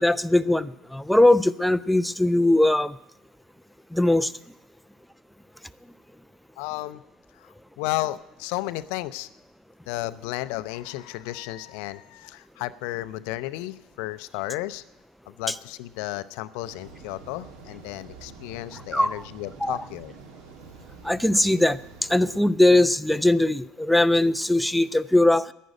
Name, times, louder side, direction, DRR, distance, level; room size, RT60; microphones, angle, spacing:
voice 1, 0.0-3.0 3.9-4.3 18.9-19.1 19.6-19.8 21.0-21.8 22.1-25.5, left 1 dB, ahead, 12 dB, 0.4 m, -20 dB
voice 2, 6.6-7.0 7.4-9.3 9.9-14.8 15.3-20.1, left 17 dB, 60° left, 15 dB, 0.5 m, -33 dB
sound 1, 16.6-22.4, right 4 dB, 65° right, 1.7 m, -46 dB
11.0 x 10.0 x 9.0 m, 0.84 s
figure-of-eight pair, 65°, 0 cm